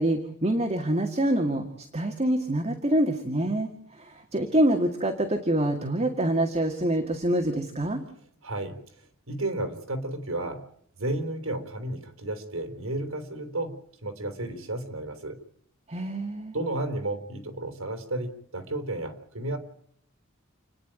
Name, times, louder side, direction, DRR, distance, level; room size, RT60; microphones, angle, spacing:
voice 1, 0.0-8.0 15.9-16.5, right 1 dB, 30° right, 4 dB, 2.1 m, -26 dB
voice 2, 8.4-8.8 9.3-10.6 11.0-15.4 16.5-19.6, right 2 dB, 70° right, 7 dB, 3.9 m, -32 dB
30.0 x 10.5 x 9.0 m, 0.68 s
head